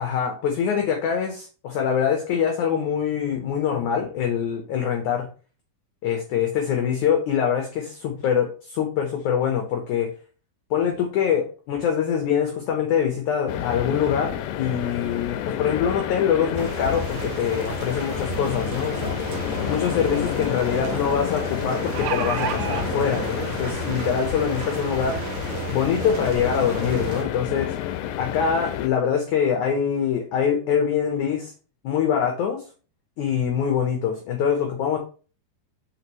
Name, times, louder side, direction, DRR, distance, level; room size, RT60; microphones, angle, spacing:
voice 1, 0.0-5.3 6.0-10.1 10.7-19.1 19.7-25.2 25.7-27.7 28.2-31.5 31.8-32.6 33.2-35.0, left 7 dB, 70° left, 3 dB, 2.0 m, -24 dB
sound 1, 13.5-28.9, left 11 dB, 85° left, 2.6 m, -30 dB
sound 2, 16.6-27.2, right 4 dB, 60° right, 2.3 m, -33 dB
sound 3, 21.6-22.8 23.8-23.9 24.3-24.4, right 8 dB, 75° right, 2.1 m, -29 dB
6.5 x 6.2 x 3.1 m, 0.36 s
omnidirectional pair, 4.5 m